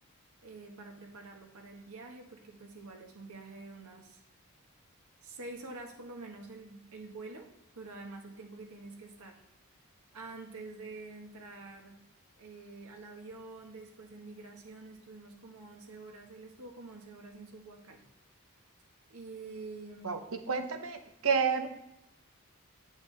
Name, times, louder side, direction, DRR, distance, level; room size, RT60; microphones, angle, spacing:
voice 1, 0.4-4.2 5.2-7.5 7.7-9.4 10.1-12.0 12.4-18.0 19.1-20.2, right 3 dB, 85° right, 2 dB, 1.4 m, -47 dB
voice 2, 20.5-21.7, right 5 dB, 65° right, 7 dB, 0.8 m, -29 dB
8.6 x 7.2 x 3.3 m, 0.86 s
head